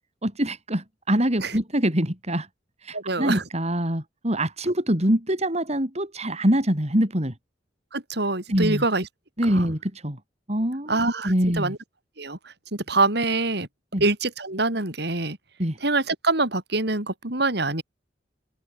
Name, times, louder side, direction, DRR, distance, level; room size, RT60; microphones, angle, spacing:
voice 1, 0.2-2.5 2.8-7.3 8.5-8.8 9.4-10.2 10.5-11.0 11.2-11.7 13.9-14.0 15.6-15.8, equal, 40° right, 7.7 m, -24 dB
voice 2, 2.9-3.4 7.9-9.1 9.5-9.7 10.9-11.8 12.2-12.4 12.7-13.7 14.0-15.4 15.8-17.8, right 2 dB, 65° right, 4.9 m, -25 dB
head